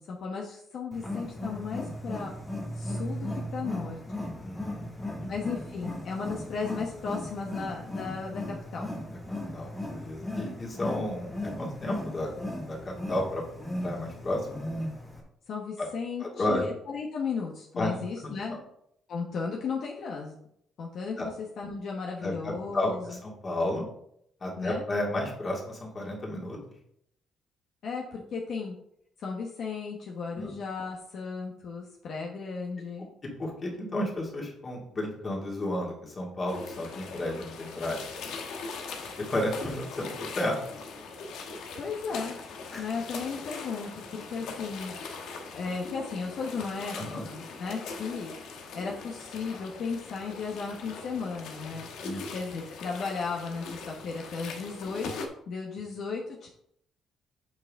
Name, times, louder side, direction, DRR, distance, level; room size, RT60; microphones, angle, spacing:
voice 1, 0.0-2.3 2.7-4.4 5.3-8.9 15.5-18.5 19.1-20.3 20.8-23.2 24.6-24.8 27.8-28.7 29.2-33.1 41.8-42.4 42.8-44.9 45.5-46.9 47.2-48.3 48.7-51.9 52.3-56.5, left 5 dB, 60° left, -1 dB, 1.1 m, -35 dB
Wild animals, 0.9-15.2, left 1 dB, 10° left, 2.2 m, -37 dB
voice 2, 4.4-4.9 5.2-5.3 9.5-12.3 12.7-13.4 13.8-14.6 15.8-15.9 16.2-16.6 17.8-18.3 21.2-21.3 22.2-23.8 24.4-26.6 30.3-30.5 33.4-38.1 39.2-40.6 42.7-42.8 46.9-47.2 52.0-52.2, left 1 dB, 30° left, -2 dB, 2.4 m, -32 dB
sound 1, 36.5-55.3, left 4 dB, 85° left, 1.1 m, -41 dB
7.7 x 5.9 x 3.6 m, 0.72 s
cardioid pair, 130°, 0 cm